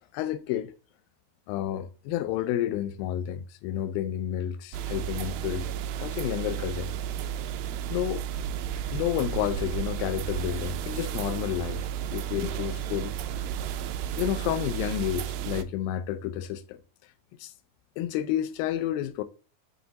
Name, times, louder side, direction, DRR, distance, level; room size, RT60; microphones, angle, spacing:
voice 1, 0.1-0.7 1.5-5.7 6.0-6.9 7.9-8.2 8.9-11.8 12.1-13.5 14.2-16.8 17.4-17.5 18.0-19.2, left 12 dB, 90° left, 2.4 m, -30 dB
sound 1, 4.7-15.6, right 9 dB, 80° right, 2.2 m, -33 dB
7.9 x 2.8 x 5.2 m
omnidirectional pair, 4.1 m